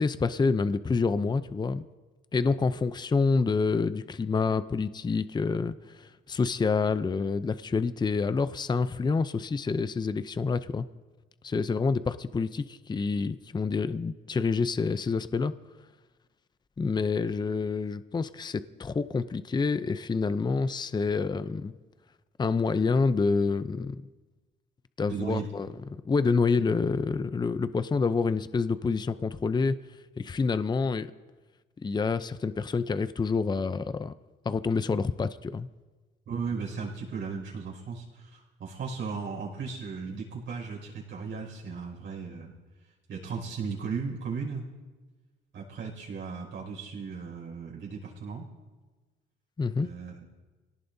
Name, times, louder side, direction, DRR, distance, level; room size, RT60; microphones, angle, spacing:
voice 1, 0.0-1.9 2.3-10.9 11.4-15.5 16.8-21.7 22.4-24.0 25.0-29.8 30.2-31.1 31.8-34.1 34.4-35.7 49.6-49.9, left 4 dB, 20° left, 13 dB, 0.5 m, -27 dB
voice 2, 25.1-25.5 36.3-42.5 43.1-44.6 45.5-48.5 49.8-50.2, right 5 dB, 70° right, -2 dB, 5.7 m, -36 dB
24.5 x 18.0 x 2.7 m, 1.3 s
cardioid pair, 90°, 20 cm